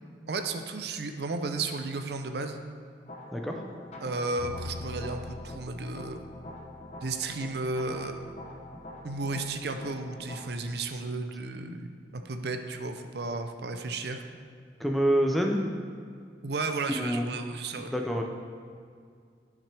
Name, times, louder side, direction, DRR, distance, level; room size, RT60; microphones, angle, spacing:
voice 1, 0.3-2.6 4.0-6.2 7.0-8.2 9.0-11.9 12.1-14.2 16.4-17.9, right 3 dB, 60° right, 6 dB, 0.5 m, -33 dB
sound 1, 3.1-10.4, left 1 dB, 35° left, 0.8 m, -45 dB
Bowed string instrument, 4.4-10.6, left 2 dB, 40° right, 1.5 m, -46 dB
voice 2, 14.8-15.6 16.9-17.4 17.7-18.2, equal, ahead, 1 dB, 0.5 m, -27 dB
11.0 x 5.9 x 3.4 m, 2.1 s
head